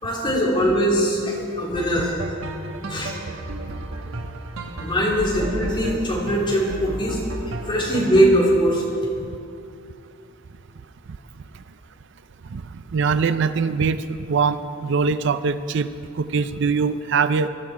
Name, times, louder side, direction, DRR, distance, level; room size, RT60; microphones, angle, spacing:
voice 1, 0.0-2.2 2.9-3.1 4.8-7.2 7.7-8.8, equal, 25° left, -4 dB, 3.3 m, -21 dB
sound 1, 1.8-8.6, right 1 dB, 75° right, 1.1 m, -33 dB
voice 2, 12.9-15.9 16.2-17.5, right 5 dB, 60° right, 12 dB, 0.4 m, -22 dB
20.5 x 12.0 x 4.8 m, 2.4 s
head